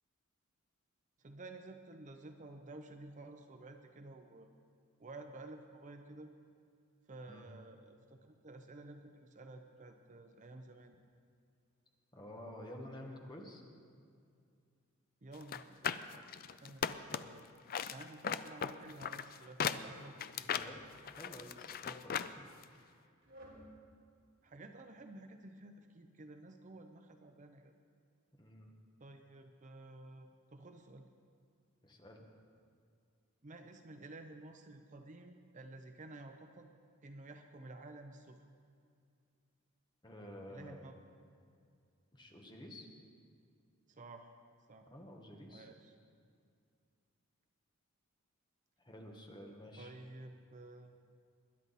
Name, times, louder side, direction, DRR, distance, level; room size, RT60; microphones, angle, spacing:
voice 1, 1.2-4.5 5.0-6.3 7.1-11.0 15.2-16.3 16.6-17.5 17.9-20.7 24.4-27.7 29.0-31.1 33.4-36.7 37.0-38.4 40.5-41.0 43.9-44.3 44.7-44.9 45.5-46.0 49.8-50.9, right 2 dB, 35° right, 6 dB, 0.6 m, -52 dB
voice 2, 12.1-13.6 20.3-22.9 28.3-28.7 31.8-32.2 40.0-40.8 42.1-42.9 44.9-45.7 48.8-49.9, left 1 dB, 20° left, 1 dB, 1.4 m, -51 dB
sound 1, 15.4-17.4 17.7-22.3 22.6-22.7, left 8 dB, 45° left, 0.4 m, -38 dB
sound 2, 19.6-20.0 20.6-21.3 21.9-22.3 23.2-23.7, right 1 dB, 60° right, 3.2 m, -57 dB
20.5 x 10.5 x 4.2 m, 2.3 s
head